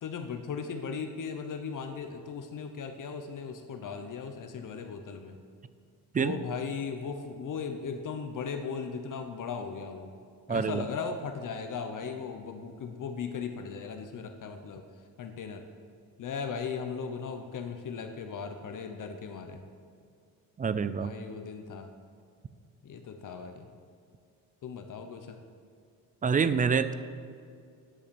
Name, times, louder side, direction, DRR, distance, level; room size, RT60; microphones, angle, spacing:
voice 1, 0.0-5.4 6.2-10.1 10.5-14.8 15.2-15.6 16.2-19.6 21.0-21.9 22.8-23.7 24.6-25.4, left 5 dB, 55° left, 6 dB, 0.8 m, -37 dB
voice 2, 10.5-10.8 20.6-21.1 26.2-26.9, right 6 dB, 20° right, 13 dB, 0.4 m, -26 dB
10.0 x 7.8 x 6.9 m, 2.4 s
cardioid pair, 140°, 38 cm